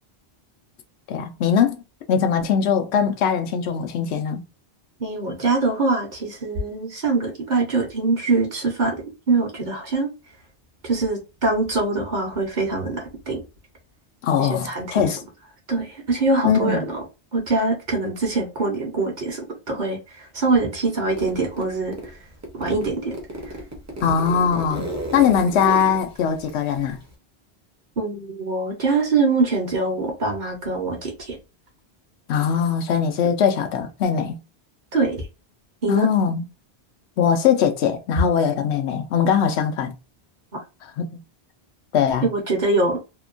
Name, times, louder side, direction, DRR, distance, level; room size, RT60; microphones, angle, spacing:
voice 1, 1.1-1.8 2.1-4.4 14.2-15.2 16.4-16.8 24.0-27.0 32.3-34.4 35.9-36.4 37.2-39.9 41.0-41.1 41.9-42.3, left 7 dB, 85° left, 0.9 m, -21 dB
voice 2, 5.0-10.1 10.8-13.4 14.4-15.1 15.7-17.0 17.3-22.0 22.5-23.2 23.4-23.6 28.0-31.4 34.9-35.3 35.8-36.1 42.2-43.0, right 3 dB, 50° right, 0.9 m, -23 dB
Zipper (clothing), 21.1-22.1 22.4-27.1, right 1 dB, 20° right, 0.6 m, -33 dB
2.8 x 2.2 x 2.4 m
omnidirectional pair, 1.1 m